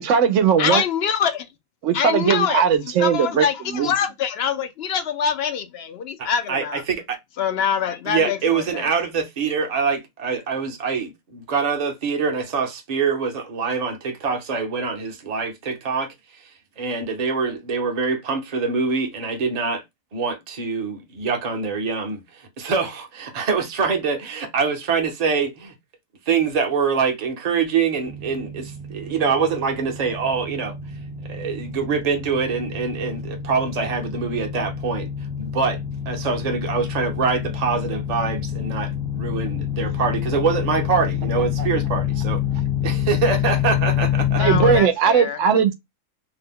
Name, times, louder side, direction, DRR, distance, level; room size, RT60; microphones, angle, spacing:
voice 1, 0.0-0.8 1.8-3.9 44.4-45.7, right 7 dB, 70° right, 0.8 m, -19 dB
voice 2, 0.6-1.4 1.9-2.6 3.0-6.8 7.4-8.4 44.4-45.4, left 8 dB, 65° left, 0.6 m, -24 dB
voice 3, 6.2-7.2 8.0-16.1 16.8-19.8 20.1-25.7 26.3-30.7 31.3-35.1 35.4-35.8 36.1-42.4 42.8-44.4, right 5 dB, 35° right, 0.7 m, -24 dB
sound 1, 28.0-44.8, left 9 dB, 5° left, 0.4 m, -27 dB
2.8 x 2.1 x 3.5 m
omnidirectional pair, 1.4 m